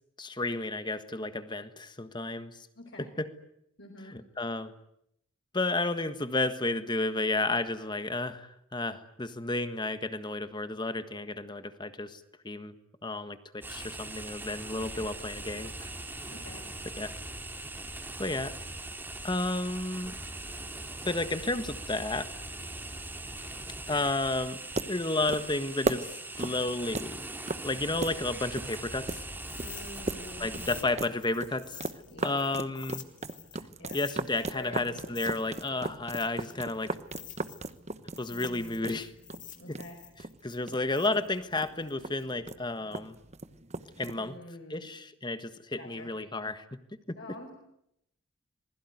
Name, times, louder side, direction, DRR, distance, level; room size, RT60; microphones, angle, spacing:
voice 1, 0.2-2.6 3.2-3.3 4.1-4.7 5.5-12.7 13.0-15.9 17.0-17.2 18.2-18.6 19.2-20.1 21.0-22.3 23.9-24.6 24.9-27.3 27.6-29.2 30.4-31.8 32.2-33.0 33.9-37.0 38.2-39.1 39.7-39.8 40.4-43.2 44.0-44.3 44.7-46.8 47.1-47.2, left 2 dB, 20° left, 1.5 m, -32 dB
voice 2, 2.8-3.1 3.8-4.1 14.8-15.1 16.3-16.6 29.5-31.0 32.1-32.4 33.8-34.0 34.5-35.4 38.3-39.0 39.6-40.0 44.1-44.9 45.8-46.1 47.2-47.5, left 1 dB, 60° left, 5.3 m, -47 dB
sound 1, 13.6-30.8, right 2 dB, 10° right, 2.7 m, -41 dB
sound 2, 24.6-44.4, right 2 dB, 35° right, 1.1 m, -38 dB
sound 3, 29.4-33.6 33.9-37.8 38.1-42.2, left 11 dB, 40° left, 2.3 m, -48 dB
27.0 x 21.0 x 9.5 m
head